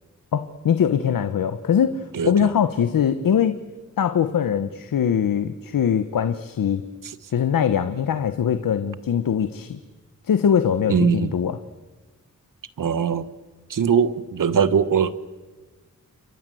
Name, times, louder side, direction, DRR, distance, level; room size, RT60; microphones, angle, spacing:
voice 1, 0.3-3.6 4.0-6.8 7.3-9.8 10.2-11.6, left 8 dB, 85° left, 11 dB, 1.1 m, -22 dB
voice 2, 2.1-2.5 7.0-7.1 10.9-11.3 12.8-13.3 13.7-15.3, right 6 dB, 75° right, 15 dB, 1.4 m, -21 dB
29.5 x 25.0 x 7.8 m, 1.3 s
cardioid pair, 65°, 33 cm